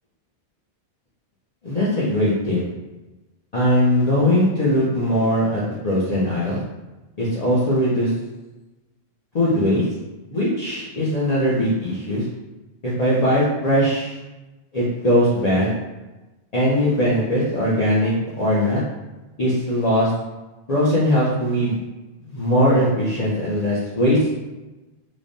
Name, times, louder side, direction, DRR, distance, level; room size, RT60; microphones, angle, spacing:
voice 1, 1.6-2.6 3.5-6.6 7.2-8.1 9.3-9.8 10.3-12.2 12.8-14.2 14.7-15.7 16.5-18.8 19.4-20.1 20.7-21.8 22.2-24.3, equal, 45° left, -8 dB, 0.6 m, -20 dB
3.2 x 2.1 x 2.5 m, 1.1 s
omnidirectional pair, 1.1 m